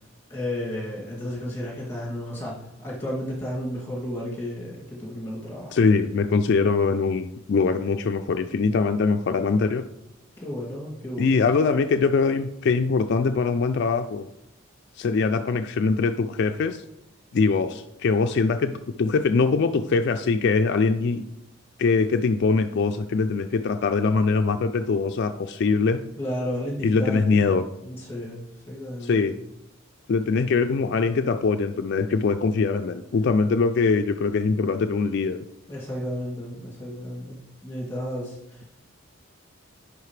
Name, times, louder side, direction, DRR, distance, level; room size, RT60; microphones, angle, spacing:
voice 1, 0.3-5.8 10.4-11.4 26.2-27.6 27.8-29.2 35.7-38.7, equal, 10° left, -4 dB, 2.4 m, -33 dB
voice 2, 5.7-9.9 11.2-14.3 15.0-16.8 17.3-21.2 21.8-26.0 26.8-27.6 29.0-29.4 30.1-35.4, left 4 dB, 55° left, 6 dB, 0.3 m, -22 dB
10.5 x 5.0 x 3.3 m, 0.88 s
head